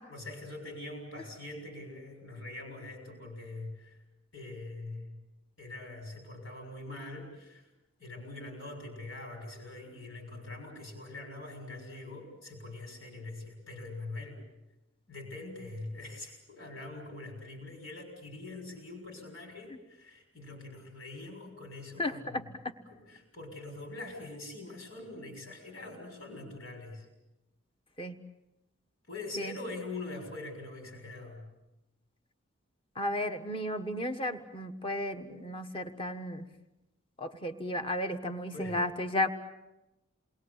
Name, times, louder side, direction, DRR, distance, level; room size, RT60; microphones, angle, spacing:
voice 1, 0.1-4.0 4.3-5.1 5.6-7.6 8.0-14.4 15.1-22.5 22.9-27.0 29.1-31.4 38.5-38.8, left 2 dB, 80° left, 4 dB, 6.6 m, -43 dB
voice 2, 22.0-22.4 28.0-28.1 29.4-29.6 33.0-36.4 37.2-39.3, left 1 dB, 25° left, 7 dB, 1.5 m, -33 dB
28.5 x 21.5 x 8.3 m, 0.98 s
head